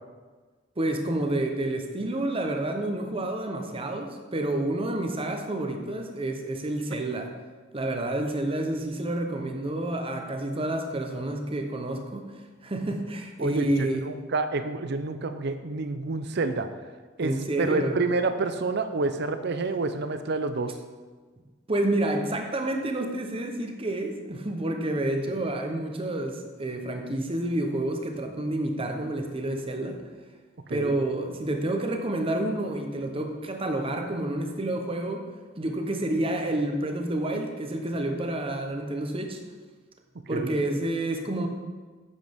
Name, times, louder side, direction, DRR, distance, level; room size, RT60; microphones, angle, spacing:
voice 1, 0.8-7.3 7.7-12.3 12.6-14.0 17.2-18.0 21.7-30.0 30.7-35.3 35.6-39.4 40.3-41.5, right 1 dB, 30° right, 4 dB, 0.9 m, -29 dB
voice 2, 13.4-16.7 17.2-20.7 25.3-25.4 30.7-31.0 40.3-40.5, right 3 dB, 60° right, 9 dB, 0.6 m, -28 dB
9.3 x 7.4 x 3.6 m, 1.4 s
head